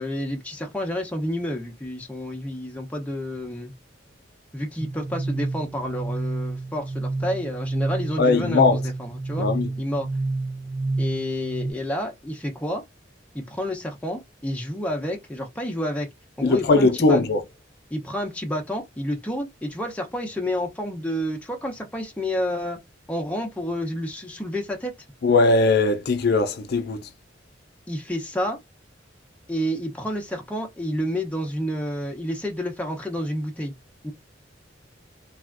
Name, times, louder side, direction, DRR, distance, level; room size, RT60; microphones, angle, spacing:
voice 1, 0.0-3.7 4.5-9.5 9.8-10.1 11.0-12.8 13.3-16.1 16.4-17.2 17.9-22.8 23.1-24.9 27.9-28.6 29.5-33.7 34.0-34.1, equal, 10° left, 0.6 m, -29 dB
sound 1, 4.8-11.7, right 2 dB, 50° right, 0.6 m, -29 dB
voice 2, 8.2-8.8 9.4-9.7 16.4-17.4 25.2-27.0, left 3 dB, 60° left, 0.5 m, -19 dB
3.3 x 2.4 x 2.4 m
head